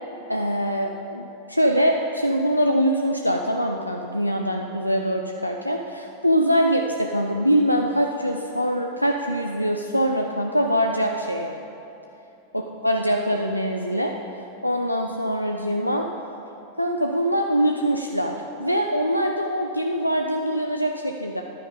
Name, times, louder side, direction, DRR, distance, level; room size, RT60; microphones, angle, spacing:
voice 1, 0.3-1.2 1.5-11.6 12.5-14.1 14.6-16.1 16.8-21.4, equal, 90° left, 2 dB, 0.5 m, -23 dB
10.5 x 9.3 x 5.2 m, 2.9 s
figure-of-eight pair, 90°, 0 cm